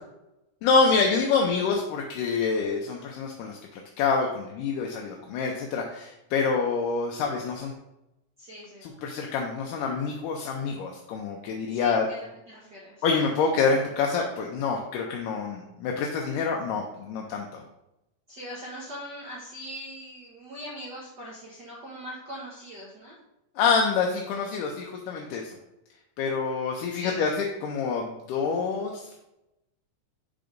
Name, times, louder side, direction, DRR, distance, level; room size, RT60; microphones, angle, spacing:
voice 1, 0.6-7.7 8.8-12.1 13.0-17.6 23.6-25.6 26.2-29.2, left 5 dB, 85° left, 1 dB, 2.3 m, -27 dB
voice 2, 8.4-8.9 11.7-12.3 12.5-13.0 18.3-23.2 26.9-27.2, equal, 65° right, -6 dB, 1.0 m, -41 dB
5.7 x 3.9 x 5.1 m, 0.92 s
omnidirectional pair, 3.7 m